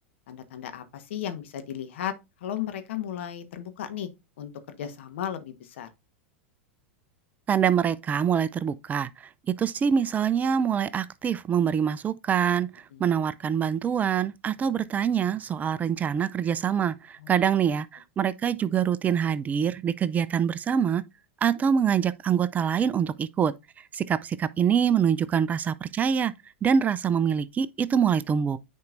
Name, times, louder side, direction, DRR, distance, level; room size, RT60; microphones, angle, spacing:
voice 1, 0.3-2.1 2.4-4.1 4.4-5.9 12.9-13.1 17.2-17.6, left 10 dB, 70° left, 1.2 m, -35 dB
voice 2, 7.5-9.3 9.6-21.0 21.4-23.5 23.9-26.3 26.6-28.6, right 8 dB, 25° right, 0.4 m, -25 dB
9.5 x 4.5 x 2.5 m
hypercardioid pair, 100°, 7 cm